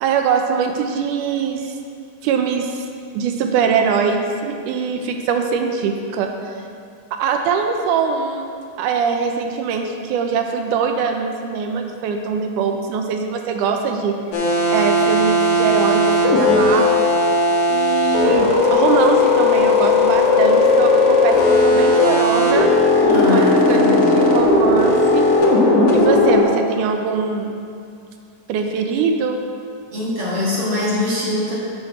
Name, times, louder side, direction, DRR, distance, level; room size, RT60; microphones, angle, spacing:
voice 1, 0.0-1.8 2.2-2.9 3.1-6.6 7.1-14.2 14.7-17.2 17.7-25.3 25.9-27.5 28.5-29.4, right 6 dB, 80° right, 4 dB, 2.0 m, -22 dB
sound 1, 14.3-26.4, left 2 dB, 75° left, 2.7 m, -16 dB
voice 2, 23.0-24.1 29.9-31.6, left 2 dB, 50° right, -7 dB, 2.3 m, -22 dB
8.4 x 6.4 x 4.8 m, 2.4 s
omnidirectional pair, 3.7 m